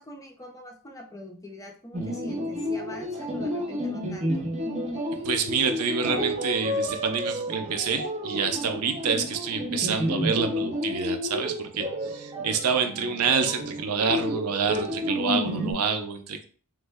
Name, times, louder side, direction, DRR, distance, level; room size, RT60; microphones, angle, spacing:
voice 1, 0.0-4.5, left 1 dB, 15° left, 1 dB, 0.5 m, -44 dB
sound 1, 1.9-15.7, equal, 30° right, 0.6 m, -31 dB
voice 2, 5.2-16.4, right 5 dB, 75° right, 6 dB, 0.5 m, -27 dB
3.1 x 2.1 x 3.3 m, 0.42 s
head